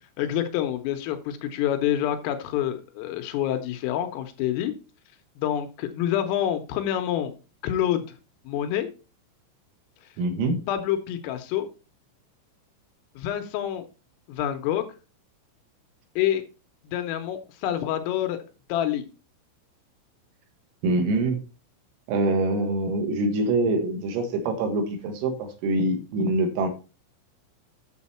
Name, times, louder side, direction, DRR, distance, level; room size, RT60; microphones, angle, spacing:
voice 1, 0.2-4.7 5.4-7.3 7.6-8.0 8.5-8.9 10.0-10.1 10.7-11.7 13.2-13.9 14.3-14.9 16.2-16.4 16.9-18.4 18.7-19.1, left 11 dB, 85° left, 7 dB, 3.5 m, -27 dB
voice 2, 10.2-10.6 20.8-21.4 22.1-26.7, right 2 dB, 85° right, 5 dB, 4.4 m, -25 dB
9.2 x 7.3 x 4.2 m, 0.32 s
omnidirectional pair, 5.9 m